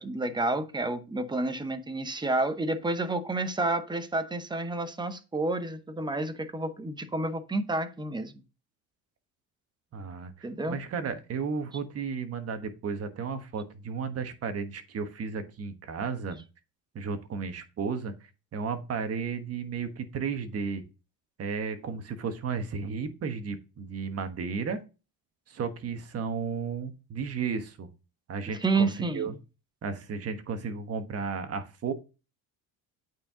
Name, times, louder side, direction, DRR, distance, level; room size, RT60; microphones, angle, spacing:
voice 1, 0.0-8.3 10.4-10.8 28.6-29.4, right 2 dB, 10° right, 0.8 m, -30 dB
voice 2, 9.9-16.4 16.9-20.8 21.4-24.8 25.5-27.9 28.3-29.3 29.8-31.9, right 5 dB, 40° right, 1.2 m, -34 dB
8.5 x 4.6 x 3.7 m
cardioid pair, 115°, 39 cm